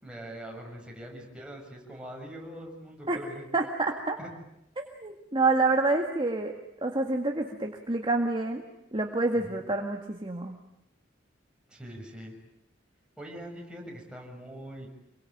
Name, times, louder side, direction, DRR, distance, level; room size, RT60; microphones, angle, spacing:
voice 1, 0.0-3.6 4.2-4.3 9.3-9.6 11.7-12.3 13.2-14.9, equal, 5° right, -1 dB, 7.0 m, -43 dB
voice 2, 3.5-4.2 4.8-6.5 6.8-8.6 8.9-10.6, right 3 dB, 25° right, 2 dB, 2.0 m, -27 dB
27.5 x 23.0 x 9.3 m, 0.85 s
head